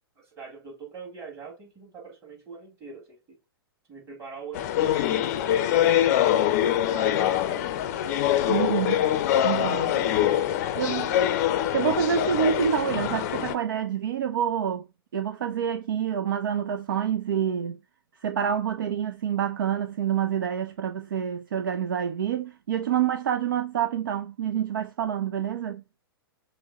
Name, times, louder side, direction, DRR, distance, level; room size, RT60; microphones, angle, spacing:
voice 1, 0.2-3.4 3.9-8.3 9.3-10.9, right 5 dB, 20° right, 2.2 m, -44 dB
sound 1, 4.5-13.5, left 11 dB, 40° left, 0.5 m, -24 dB
voice 2, 8.5-9.1 9.4-9.9 10.8-11.2 11.7-14.9 15.1-17.8 18.2-25.8, right 8 dB, 55° right, 0.5 m, -27 dB
6.1 x 2.1 x 3.6 m
figure-of-eight pair, 110°, 13 cm